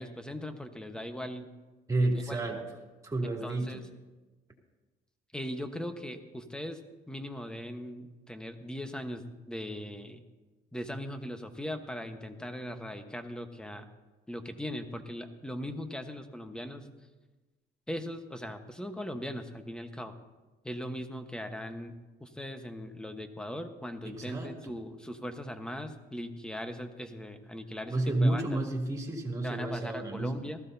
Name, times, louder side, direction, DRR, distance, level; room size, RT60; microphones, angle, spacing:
voice 1, 0.0-1.5 2.0-2.6 3.4-3.8 5.3-6.8 7.1-10.2 10.7-13.9 14.3-16.9 17.9-20.1 20.6-28.6 29.4-30.6, equal, 5° left, 7 dB, 1.2 m, -39 dB
voice 2, 1.9-2.7 3.0-3.8 24.0-24.7 27.9-30.3, right 2 dB, 20° right, 0 dB, 2.8 m, -30 dB
19.5 x 14.5 x 2.8 m, 1.2 s
cardioid pair, 110°, 17 cm